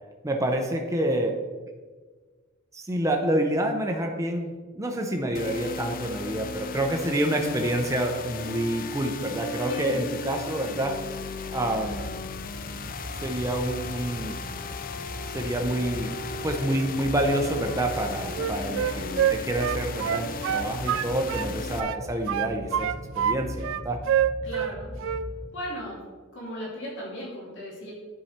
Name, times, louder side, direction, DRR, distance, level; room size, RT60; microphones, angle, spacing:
voice 1, 0.2-1.4 2.7-11.0 11.5-12.0 13.2-14.4 15.3-16.2 16.4-24.0, right 1 dB, 15° right, 2 dB, 0.6 m, -28 dB
sound 1, 5.3-21.8, left 4 dB, 45° left, 0.5 m, -36 dB
voice 2, 9.6-10.1 18.5-18.7 24.4-24.9 25.5-26.0 26.3-27.9, equal, 60° left, -5 dB, 2.6 m, -36 dB
sound 2, 11.8-25.5, equal, ahead, 1.1 m, -40 dB
Wind instrument woodwind instrument, 18.3-21.5 21.8-23.4 23.6-24.7 25.0-25.3, right 9 dB, 65° right, 0.3 m, -26 dB
10.5 x 4.8 x 4.3 m, 1.4 s
head